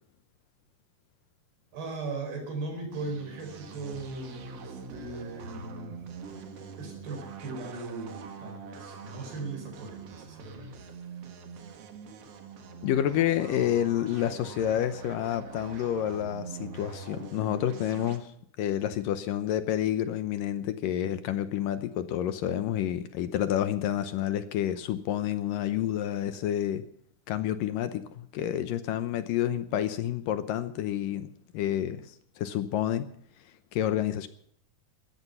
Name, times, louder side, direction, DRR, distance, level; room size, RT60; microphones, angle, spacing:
voice 1, 1.7-6.1 6.8-10.9, right 3 dB, 90° right, 4 dB, 6.6 m, -38 dB
sound 1, 2.9-18.2, right 5 dB, 50° right, 2.0 m, -44 dB
voice 2, 12.8-18.3 18.6-26.8 27.3-31.3 31.5-32.1 32.4-33.1 33.7-34.3, left 11 dB, 70° left, 11 dB, 2.3 m, -29 dB
18.5 x 13.5 x 5.6 m, 0.65 s
omnidirectional pair, 4.5 m